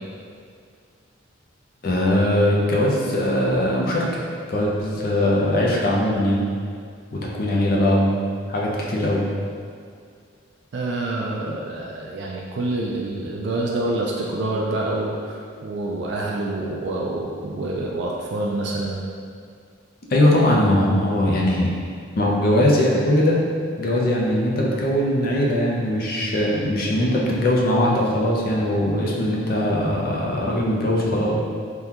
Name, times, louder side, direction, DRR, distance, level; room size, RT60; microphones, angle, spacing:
voice 1, 1.8-4.0 4.5-6.4 7.1-8.2 8.5-9.2 20.1-21.7 22.1-23.4 23.8-31.5, left 1 dB, 45° left, -3 dB, 0.5 m, -20 dB
voice 2, 10.7-19.0, right 2 dB, 55° right, -2 dB, 0.3 m, -27 dB
3.6 x 2.2 x 2.8 m, 2.2 s
head